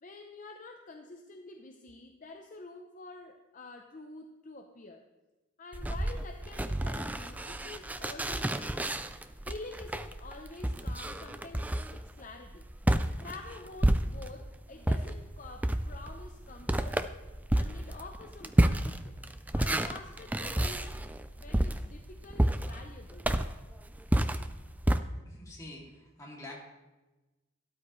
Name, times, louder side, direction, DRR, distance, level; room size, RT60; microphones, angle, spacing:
voice 1, 0.0-5.0 5.6-9.0 9.5-12.6 13.2-17.1 17.5-19.2 19.5-21.1 21.4-23.3, left 3 dB, 40° left, 4 dB, 0.6 m, -48 dB
sound 1, 5.7-14.5 14.8-25.0, right 1 dB, 10° right, 0.3 m, -30 dB
voice 2, 25.1-26.5, left 1 dB, 15° left, -4 dB, 2.5 m, -47 dB
13.0 x 12.0 x 3.2 m, 1.1 s
head